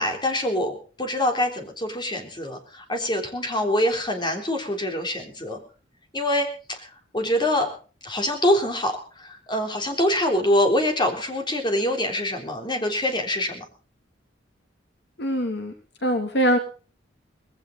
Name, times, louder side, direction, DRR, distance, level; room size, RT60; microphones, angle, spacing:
voice 1, 0.0-5.6 6.1-6.5 6.8-6.9 7.1-7.7 8.0-13.6, left 1 dB, 25° left, 3 dB, 3.8 m, -24 dB
voice 2, 15.2-15.7 16.0-16.6, equal, 65° left, 5 dB, 2.7 m, -22 dB
20.0 x 16.5 x 4.0 m, 0.39 s
head